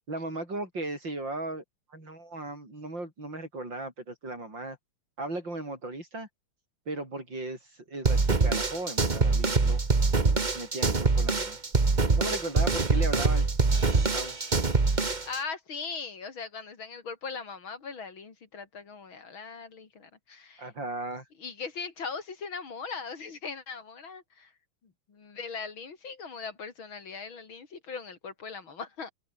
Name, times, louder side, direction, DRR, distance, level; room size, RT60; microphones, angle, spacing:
voice 1, 0.1-1.6 1.9-4.8 5.2-6.3 6.9-9.8 10.5-11.6 12.2-14.4 20.6-21.3, right 2 dB, 60° right, 8.7 m, -36 dB
sound 1, 8.0-15.4, right 3 dB, 25° right, 1.6 m, -24 dB
voice 2, 15.3-20.7 21.4-24.5 24.8-29.1, left 5 dB, 70° left, 3.7 m, -39 dB
omnidirectional pair, 2.3 m